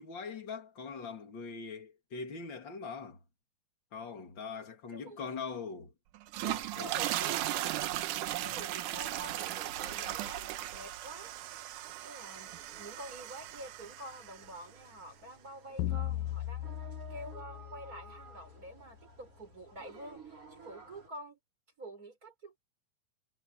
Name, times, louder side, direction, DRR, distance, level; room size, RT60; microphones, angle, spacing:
voice 1, 0.0-3.2 3.9-5.9 6.4-7.4, left 5 dB, 35° left, 3.0 m, -42 dB
sound 1, 6.2-14.5, right 15 dB, 75° right, 2.3 m, -37 dB
sound 2, 6.4-21.1, right 3 dB, 45° right, 6.1 m, -55 dB
voice 2, 6.8-7.9 8.4-11.3 12.0-12.5 12.8-16.7 17.1-21.4 21.8-22.6, right 1 dB, 25° right, 5.0 m, -48 dB
sound 3, 15.8-18.5, left 14 dB, 80° left, 1.8 m, -37 dB
omnidirectional pair, 3.8 m